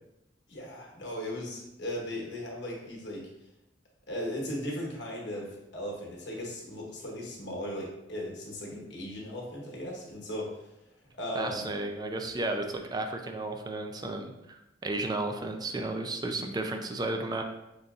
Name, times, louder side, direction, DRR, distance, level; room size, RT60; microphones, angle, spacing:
voice 1, 0.5-3.2 4.1-10.7 11.2-11.7, left 1 dB, 70° left, -2 dB, 1.0 m, -37 dB
voice 2, 11.3-17.4, right 2 dB, 20° right, 5 dB, 0.3 m, -33 dB
5.3 x 2.5 x 2.4 m, 0.91 s
head